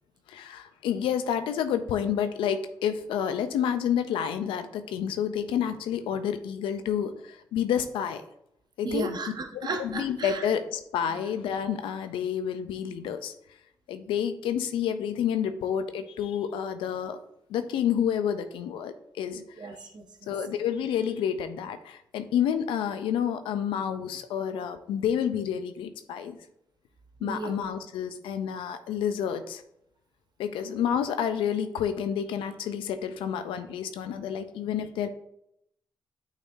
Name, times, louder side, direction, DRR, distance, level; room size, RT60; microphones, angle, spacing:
voice 1, 0.3-8.2 8.8-9.1 9.5-13.3 13.9-17.2 17.5-19.7 20.3-26.4 27.2-29.6 30.4-35.1, left 8 dB, 85° left, 10 dB, 0.5 m, -29 dB
voice 2, 8.8-10.5 19.6-20.3 27.2-27.5, right 3 dB, 55° right, 5 dB, 1.0 m, -34 dB
8.8 x 4.1 x 2.6 m, 0.77 s
supercardioid pair, 45°, 9 cm